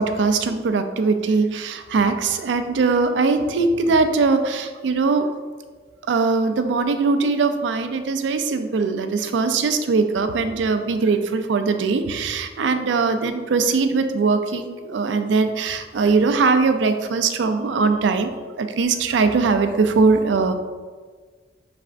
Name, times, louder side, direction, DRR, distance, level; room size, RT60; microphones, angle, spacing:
voice 1, 0.0-5.3 6.1-20.5, right 4 dB, 85° right, 8 dB, 0.4 m, -21 dB
6.0 x 3.3 x 2.4 m, 1.5 s
head